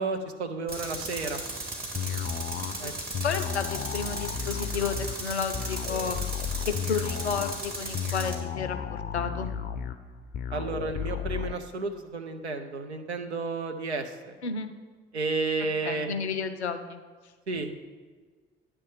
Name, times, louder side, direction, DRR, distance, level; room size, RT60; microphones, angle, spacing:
voice 1, 0.0-1.4 2.8-2.9 10.5-14.3 15.1-16.1 17.5-17.7, right 3 dB, 85° right, 6 dB, 0.6 m, -32 dB
Tools, 0.7-8.4, right 2 dB, 30° right, 1.8 m, -36 dB
sound 1, 1.9-11.5, left 8 dB, 30° left, 0.5 m, -34 dB
voice 2, 3.2-6.2 6.6-9.5 14.4-14.7 15.8-17.0, left 6 dB, 85° left, 9 dB, 0.5 m, -32 dB
9.9 x 3.4 x 6.9 m, 1.5 s
figure-of-eight pair, 50°, 32 cm